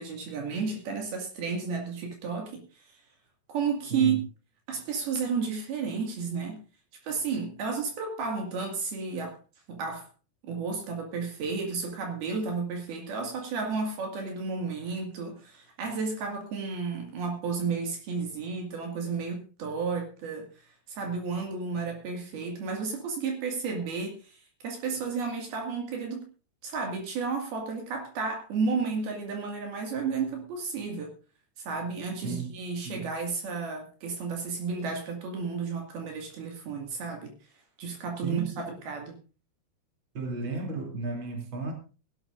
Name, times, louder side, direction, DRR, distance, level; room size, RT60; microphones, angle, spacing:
voice 1, 0.0-3.0 3.5-4.2 4.7-6.6 7.0-9.4 9.7-10.1 10.4-20.5 20.9-24.4 24.6-26.2 26.6-31.1 31.6-37.3 37.8-39.2, right 5 dB, 70° right, 2 dB, 4.1 m, -32 dB
voice 2, 38.2-38.7 40.1-41.7, right 3 dB, 30° right, 2 dB, 3.5 m, -34 dB
20.5 x 12.0 x 2.6 m, 0.34 s
omnidirectional pair, 4.8 m